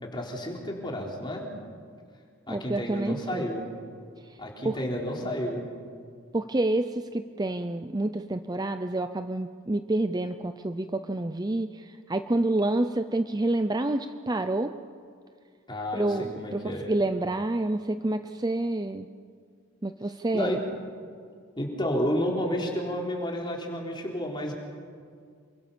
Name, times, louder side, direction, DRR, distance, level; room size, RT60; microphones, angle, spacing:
voice 1, 0.0-1.5 2.5-3.6 4.4-5.6 15.7-16.9 20.3-20.6 21.6-24.5, equal, 20° left, 0 dB, 4.0 m, -31 dB
voice 2, 2.5-3.5 4.6-4.8 6.3-14.7 15.9-19.1 19.8-20.6, right 2 dB, 20° right, 8 dB, 0.6 m, -28 dB
28.0 x 24.0 x 7.0 m, 2.1 s
head